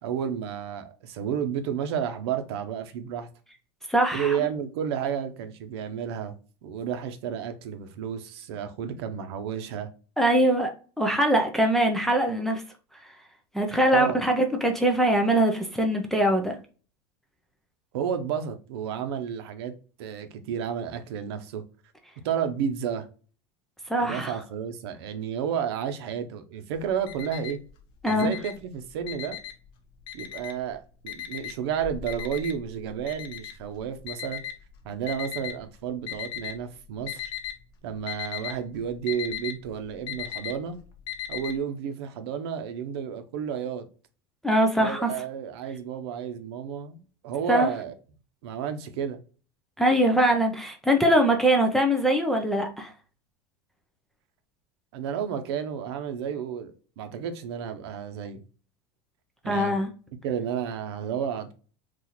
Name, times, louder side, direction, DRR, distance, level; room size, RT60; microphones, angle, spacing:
voice 1, 0.0-3.3 4.1-6.3 6.6-9.9 13.9-14.2 17.9-19.7 20.0-21.6 22.2-23.1 24.0-27.6 28.0-29.4 30.1-34.4 34.8-37.3 37.8-40.8 41.3-43.9 44.8-47.9 48.4-49.2 54.9-58.4 59.4-59.8 60.2-61.5, right 8 dB, 70° right, 0.7 m, -31 dB
voice 2, 3.9-4.4 10.2-10.7 11.0-12.6 13.5-16.6 23.9-24.4 28.0-28.3 44.4-45.1 47.5-47.7 49.8-52.9 59.5-59.9, right 1 dB, ahead, 0.3 m, -22 dB
Alarm, 26.7-27.7 28.0-29.7 30.1-30.7 31.1-35.5 36.1-36.7 37.0-37.6 37.9-41.5, left 10 dB, 40° left, 0.6 m, -36 dB
4.0 x 2.4 x 2.9 m
supercardioid pair, 170°, 14 cm